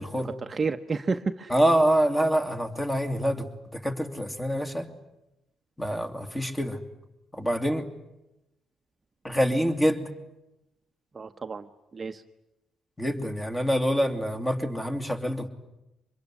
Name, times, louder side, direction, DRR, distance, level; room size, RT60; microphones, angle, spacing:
voice 1, 0.2-1.5 11.1-11.7 11.9-12.2, right 4 dB, 35° right, 7 dB, 0.9 m, -31 dB
voice 2, 1.5-4.9 5.8-6.8 7.3-7.9 9.2-10.0 13.0-15.5, equal, 10° left, 5 dB, 2.6 m, -26 dB
24.5 x 22.0 x 9.8 m, 0.94 s
cardioid pair, 90°, 0 cm